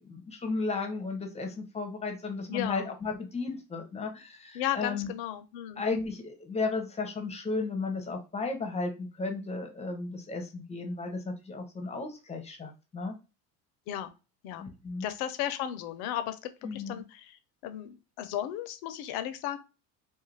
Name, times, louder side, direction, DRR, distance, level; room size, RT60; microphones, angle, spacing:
voice 1, 0.0-5.1 5.8-13.2 14.6-15.1 16.6-17.0, left 3 dB, 15° left, 4 dB, 0.6 m, -34 dB
voice 2, 2.5-2.9 4.5-5.8 13.9-14.1 14.4-14.6 15.0-17.4 17.6-19.6, left 11 dB, 70° left, 11 dB, 0.6 m, -35 dB
2.3 x 2.2 x 3.2 m, 0.30 s
supercardioid pair, 90°, 39 cm